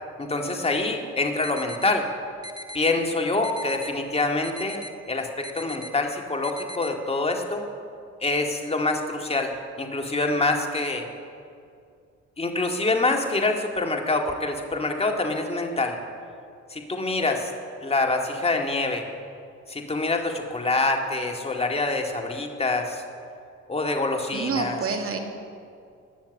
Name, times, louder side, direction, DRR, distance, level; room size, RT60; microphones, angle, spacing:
voice 1, 0.2-2.0 2.7-4.8 5.1-7.6 8.2-9.5 9.8-11.1 12.4-16.0 16.7-17.5 17.8-19.0 19.7-23.0 23.7-24.8, left 2 dB, 20° left, 2 dB, 2.0 m, -25 dB
sound 1, 1.4-1.9 2.4-2.9 3.4-3.9 4.4-4.9 5.4-5.9 6.4-6.9, left 1 dB, 15° right, 1.5 m, -39 dB
voice 2, 24.3-25.2, right 4 dB, 50° right, 3 dB, 2.3 m, -28 dB
19.5 x 7.1 x 8.2 m, 2.4 s
cardioid pair, 90°, 30 cm